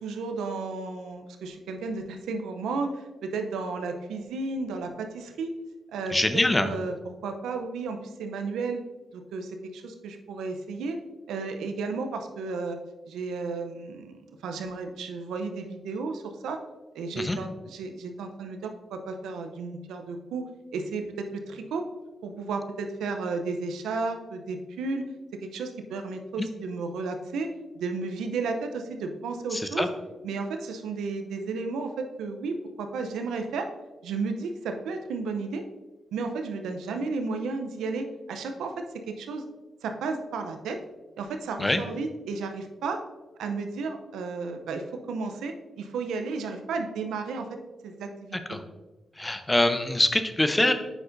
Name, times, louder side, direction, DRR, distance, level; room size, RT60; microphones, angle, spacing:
voice 1, 0.0-5.5 5.9-6.9 7.2-8.8 9.1-11.0 11.3-12.8 13.1-16.6 16.9-21.8 22.2-25.1 25.4-27.5 27.7-29.9 30.2-33.7 34.0-35.6 36.1-39.4 39.8-40.8 41.2-43.0 43.4-47.6 47.8-48.4, right 4 dB, 90° right, 5 dB, 0.6 m, -33 dB
voice 2, 6.1-6.7 17.2-17.4 26.4-26.5 29.5-29.9 41.6-41.8 48.5-48.6 49.2-50.7, left 1 dB, 20° left, 8 dB, 0.7 m, -24 dB
7.9 x 5.8 x 2.6 m, 1.1 s
supercardioid pair, 55°, 0 cm